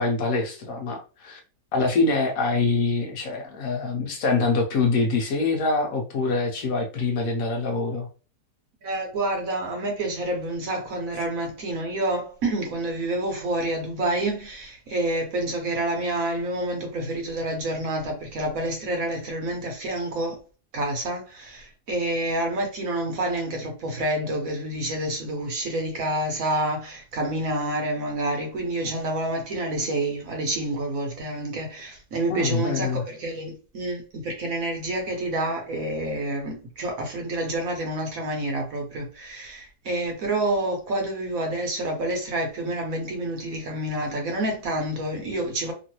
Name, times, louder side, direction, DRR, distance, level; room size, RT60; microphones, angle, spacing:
voice 1, 0.0-1.4 1.7-8.1 32.3-33.0, left 3 dB, 65° left, 1.0 m, -24 dB
voice 2, 8.8-20.4 20.7-45.7, right 1 dB, 60° right, 1.2 m, -28 dB
3.0 x 2.5 x 2.9 m
omnidirectional pair, 1.8 m